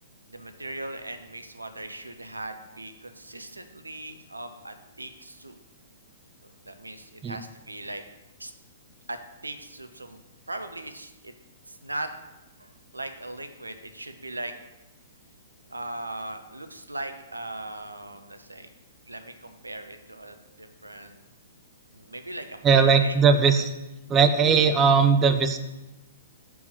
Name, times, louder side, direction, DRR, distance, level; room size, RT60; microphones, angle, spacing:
voice 1, 0.3-5.6 6.4-8.0 8.4-8.5 9.1-10.2 10.5-11.3 11.7-12.1 12.6-14.5 15.7-18.7 19.1-21.2 21.9-23.2, right 2 dB, 85° right, 8 dB, 0.7 m, -39 dB
voice 2, 22.6-23.7 24.1-25.6, right 5 dB, 20° right, 8 dB, 0.4 m, -19 dB
5.3 x 4.6 x 6.1 m, 1.0 s
figure-of-eight pair, 115°, 0 cm